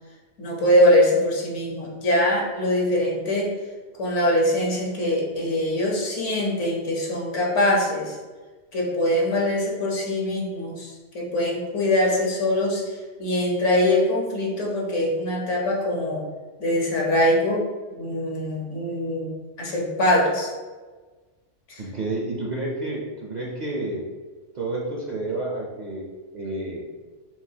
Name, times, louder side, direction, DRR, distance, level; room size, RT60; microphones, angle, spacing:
voice 1, 0.4-3.5 4.0-8.2 8.7-16.2 16.6-17.6 18.0-20.5 21.7-21.8, left 1 dB, 80° left, -2 dB, 1.4 m, -23 dB
voice 2, 21.8-24.0 24.5-26.0 26.3-26.8, right 2 dB, 45° right, -3 dB, 0.7 m, -30 dB
5.8 x 2.4 x 2.8 m, 1.3 s
omnidirectional pair, 1.2 m